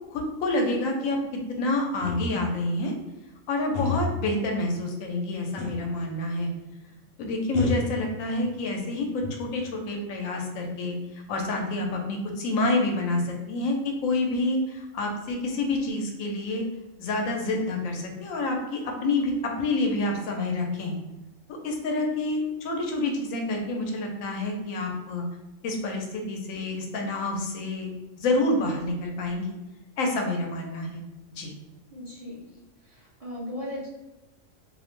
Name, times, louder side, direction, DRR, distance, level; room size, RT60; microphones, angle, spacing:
voice 1, 0.1-1.2 1.6-2.9 3.5-6.5 7.2-16.6 17.0-21.0 21.5-25.2 25.6-27.9 28.2-29.5 30.0-31.0 31.4-31.5, left 2 dB, 85° left, 2 dB, 1.0 m, -28 dB
sound 1, 2.0-2.6 3.7-4.3 5.6-6.0 6.3-6.4 7.5-8.6 9.0-9.8, left 2 dB, 55° left, 0.6 m, -31 dB
voice 2, 31.9-32.5 32.8-33.9, left 1 dB, 40° right, -7 dB, 0.5 m, -37 dB
2.6 x 2.0 x 3.0 m, 1.0 s
omnidirectional pair, 1.4 m